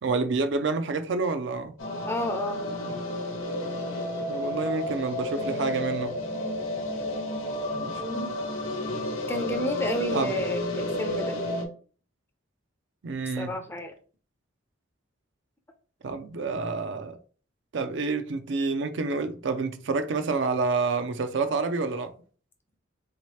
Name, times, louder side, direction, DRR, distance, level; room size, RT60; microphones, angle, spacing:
voice 1, 0.0-1.7 4.3-6.2 7.7-8.0 10.1-10.4 13.0-13.6 16.0-17.2 17.7-22.1, right 3 dB, 65° right, 0.4 m, -28 dB
sound 1, 1.8-11.6, left 1 dB, 85° left, 0.9 m, -31 dB
voice 2, 2.1-2.6 8.0-8.3 9.3-11.3 13.4-13.9, left 1 dB, 10° left, 0.5 m, -31 dB
4.0 x 2.9 x 3.1 m
head